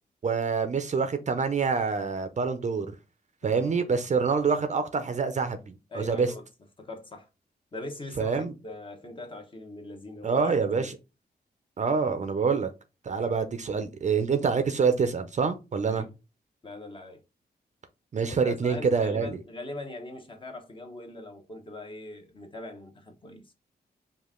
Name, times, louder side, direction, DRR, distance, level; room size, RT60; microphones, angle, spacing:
voice 1, 0.2-2.9 3.4-6.3 8.2-8.5 10.2-10.9 11.8-12.7 13.0-16.1 18.1-19.4, right 5 dB, 45° right, 0.6 m, -26 dB
voice 2, 3.4-3.9 5.9-6.4 6.8-7.3 7.7-10.5 10.8-11.0 11.8-12.0 13.1-13.4 15.9-16.1 16.6-17.2 18.3-23.5, left 2 dB, 30° left, 1.0 m, -41 dB
5.0 x 2.5 x 3.6 m
wide cardioid pair, 150°, 17 cm